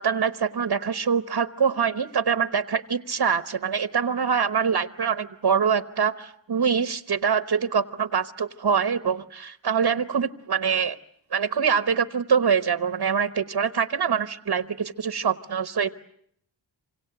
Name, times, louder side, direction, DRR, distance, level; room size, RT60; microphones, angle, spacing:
voice 1, 0.0-11.0 11.3-15.9, right 6 dB, 55° right, 11 dB, 1.0 m, -24 dB
27.5 x 25.5 x 8.0 m, 0.71 s
wide cardioid pair, 105°, 45 cm